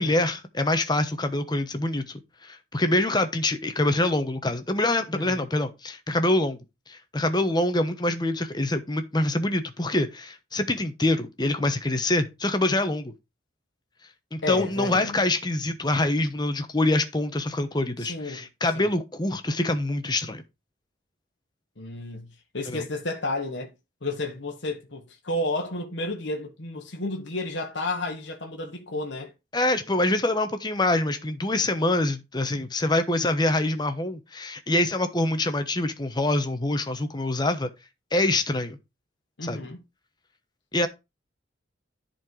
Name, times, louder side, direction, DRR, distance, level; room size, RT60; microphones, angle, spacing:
voice 1, 0.0-6.6 6.9-13.1 14.3-20.4 22.7-22.8 29.5-37.7 38.1-38.8 39.4-39.6 40.7-40.9, left 2 dB, 20° left, 1.1 m, -25 dB
voice 2, 5.1-5.5 14.4-15.2 18.0-18.5 18.7-18.9 21.8-23.7 24.0-29.3 39.4-39.8, left 2 dB, 65° left, 1.4 m, -32 dB
10.5 x 4.5 x 4.7 m
head